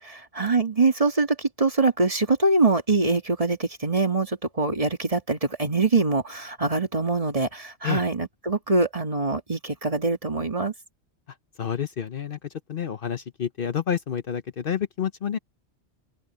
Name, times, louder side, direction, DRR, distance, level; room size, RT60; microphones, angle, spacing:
voice 1, 0.0-10.7, right 3 dB, 30° right, 1.9 m, -24 dB
voice 2, 11.6-15.4, left 8 dB, 55° left, 0.9 m, -29 dB
open air
omnidirectional pair, 1.2 m